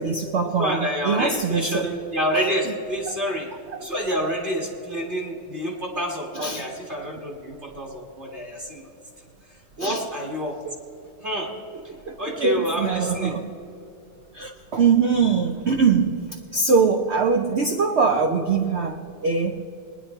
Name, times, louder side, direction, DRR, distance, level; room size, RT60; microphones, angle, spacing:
voice 1, 0.0-1.9 3.1-3.4 3.7-3.9 6.3-6.7 9.8-10.1 11.9-13.6 14.3-19.6, right 5 dB, 75° right, 6 dB, 0.6 m, -23 dB
voice 2, 0.6-3.5 3.8-8.9 9.8-10.6 11.2-11.5 12.2-13.4, equal, 30° right, -1 dB, 2.1 m, -28 dB
21.5 x 10.0 x 4.4 m, 2.8 s
omnidirectional pair, 1.9 m